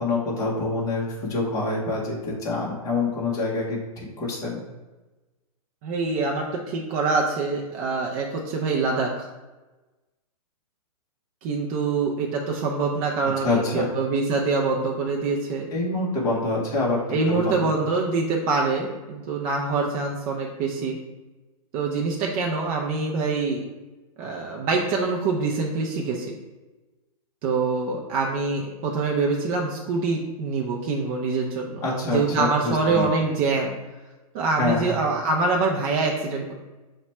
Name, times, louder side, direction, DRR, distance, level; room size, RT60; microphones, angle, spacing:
voice 1, 0.0-4.6 13.4-13.9 15.7-17.0 17.3-17.7 31.8-33.1 34.6-35.0, left 3 dB, 20° left, -3 dB, 0.8 m, -26 dB
voice 2, 5.8-9.3 11.4-15.7 17.1-21.0 21.7-23.6 24.2-26.3 27.4-33.7 34.3-36.5, right 4 dB, 25° right, -1 dB, 0.4 m, -25 dB
5.7 x 2.2 x 4.1 m, 1.1 s
hypercardioid pair, 155°, 19 cm